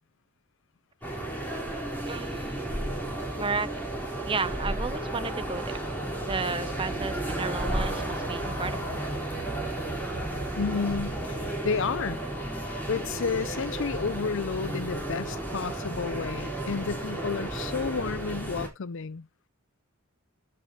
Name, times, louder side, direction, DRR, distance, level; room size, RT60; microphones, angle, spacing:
sound 1, 1.0-18.7, right 1 dB, 10° left, 3.9 m, -33 dB
voice 1, 2.1-2.7 3.3-3.7 4.3-5.8 6.2-9.0, right 4 dB, 25° right, 0.8 m, -33 dB
sound 2, 6.3-11.5, right 2 dB, 75° right, 0.9 m, -42 dB
voice 2, 10.6-12.2 12.9-19.3, left 5 dB, 60° left, 0.5 m, -31 dB
15.5 x 5.6 x 3.1 m
head